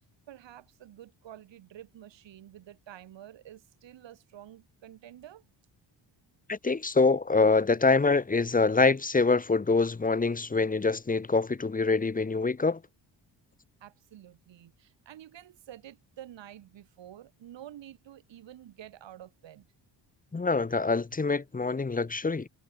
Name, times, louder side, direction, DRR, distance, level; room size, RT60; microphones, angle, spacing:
voice 1, 0.3-5.4 13.8-19.7, right 12 dB, 75° right, 4.1 m, -49 dB
voice 2, 6.5-12.8 20.3-22.5, left 4 dB, 20° left, 1.1 m, -25 dB
cardioid pair, 100°, 44 cm